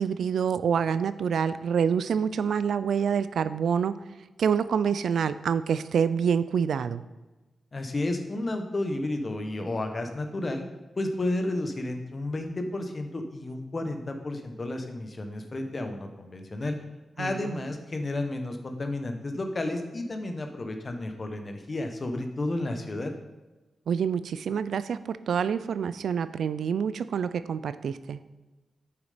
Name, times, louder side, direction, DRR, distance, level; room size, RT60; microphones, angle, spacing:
voice 1, 0.0-4.0 4.4-7.0 17.2-17.5 23.9-28.2, right 7 dB, 80° right, 14 dB, 0.4 m, -27 dB
voice 2, 7.7-10.6 11.0-16.8 17.2-23.1, left 2 dB, 30° left, 5 dB, 1.0 m, -32 dB
9.4 x 7.1 x 5.0 m, 1.1 s
wide cardioid pair, 180°, 0 cm